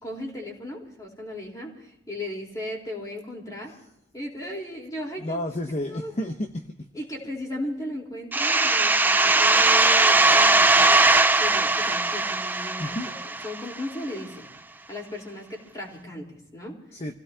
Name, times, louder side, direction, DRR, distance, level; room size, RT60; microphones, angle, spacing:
voice 1, 0.0-3.8 4.1-5.4 5.9-6.2 6.9-13.2 13.4-14.5 14.9-16.8, left 1 dB, 20° left, 4.0 m, -36 dB
voice 2, 5.2-6.6 12.8-13.1 16.9-17.1, left 1 dB, 40° left, 0.9 m, -30 dB
sound 1, 8.3-13.8, right 3 dB, 10° right, 0.5 m, -20 dB
27.5 x 17.0 x 2.8 m
head